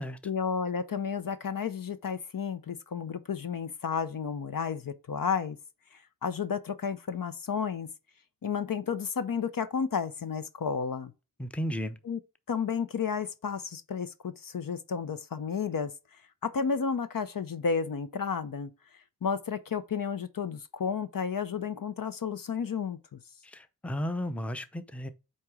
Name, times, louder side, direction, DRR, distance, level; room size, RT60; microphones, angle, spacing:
voice 1, 0.2-5.6 5.9-7.9 8.4-11.1 12.1-12.2 12.5-18.7 19.2-23.2, left 6 dB, 60° left, 0.6 m, -32 dB
voice 2, 11.4-12.0 23.4-25.1, equal, 5° left, 0.6 m, -34 dB
8.5 x 3.0 x 4.7 m
wide cardioid pair, 70°, 39 cm